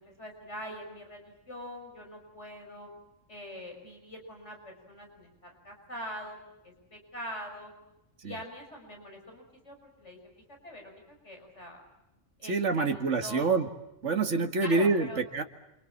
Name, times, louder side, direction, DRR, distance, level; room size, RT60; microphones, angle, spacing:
voice 1, 0.0-2.9 3.3-6.4 6.6-7.7 8.2-10.2 10.6-11.8 12.4-13.5 14.6-15.2, equal, 65° left, 3 dB, 6.5 m, -43 dB
voice 2, 12.4-13.7 14.0-15.4, right 4 dB, 70° right, 6 dB, 2.3 m, -27 dB
29.0 x 27.0 x 7.5 m, 0.90 s
omnidirectional pair, 1.3 m